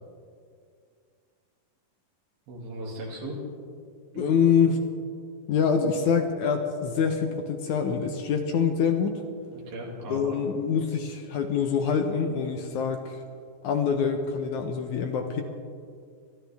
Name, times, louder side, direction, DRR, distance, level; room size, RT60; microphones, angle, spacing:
voice 1, 2.5-3.4 4.1-4.4 9.5-10.4, right 1 dB, 75° right, -3 dB, 4.2 m, -37 dB
voice 2, 4.2-4.8 5.5-9.2 10.1-13.2 13.6-15.4, left 6 dB, 70° left, 5 dB, 1.9 m, -25 dB
25.5 x 12.5 x 3.5 m, 2.2 s
omnidirectional pair, 4.2 m